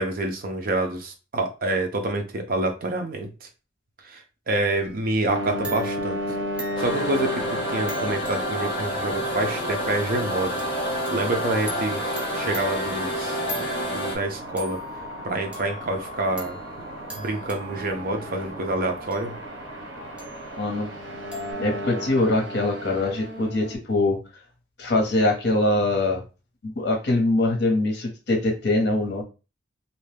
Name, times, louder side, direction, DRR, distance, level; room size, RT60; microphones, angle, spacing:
voice 1, 0.0-3.5 4.0-6.2 6.8-10.6 11.1-14.8 15.2-16.6 17.1-19.3, right 2 dB, 50° right, 5 dB, 0.6 m, -27 dB
sound 1, 4.7-5.4 5.6-14.2 14.6-21.5, equal, 5° right, 0.8 m, -42 dB
sound 2, 5.3-23.7, equal, 85° right, 0.8 m, -35 dB
sound 3, 6.8-14.2, equal, 25° left, 1.1 m, -29 dB
voice 2, 20.6-20.9 21.6-24.2 24.8-26.2 26.6-29.2, left 2 dB, 60° left, 3 dB, 0.8 m, -23 dB
2.7 x 2.2 x 3.3 m, 0.31 s
head